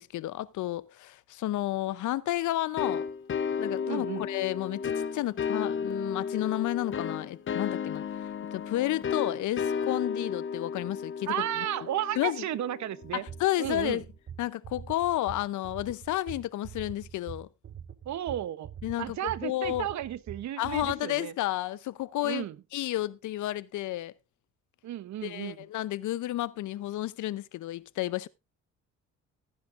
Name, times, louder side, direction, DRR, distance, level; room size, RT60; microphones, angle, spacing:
voice 1, 0.0-3.0 3.6-8.0 8.5-11.3 12.2-12.4 13.1-14.0 14.4-17.5 18.8-19.9 20.6-22.4 22.7-24.1 25.2-28.3, left 15 dB, 75° left, 0.7 m, -31 dB
sound 1, 2.8-13.2, left 6 dB, 40° left, 0.8 m, -33 dB
voice 2, 3.9-4.2 11.3-13.2 13.6-14.0 18.0-18.7 19.0-21.3 22.2-22.6 24.8-25.6, right 12 dB, 70° right, 0.9 m, -33 dB
sound 2, 13.0-21.0, right 8 dB, 35° right, 0.9 m, -44 dB
15.0 x 10.0 x 2.5 m
cardioid pair, 90°, 30 cm